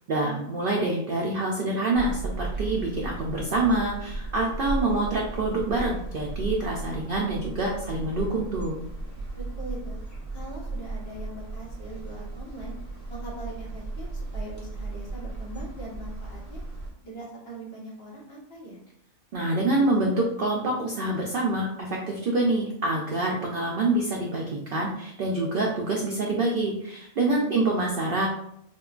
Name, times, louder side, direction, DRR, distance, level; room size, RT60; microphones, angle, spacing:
voice 1, 0.1-8.8 19.3-28.3, right 2 dB, 75° right, -1 dB, 0.5 m, -26 dB
sound 1, 1.9-16.9, right 2 dB, 20° right, 0.6 m, -35 dB
voice 2, 9.4-10.0 10.3-12.7 13.1-16.6 17.0-18.8 27.3-27.6, right 1 dB, 50° left, -4 dB, 1.0 m, -41 dB
4.4 x 2.2 x 2.3 m, 0.75 s
omnidirectional pair, 1.5 m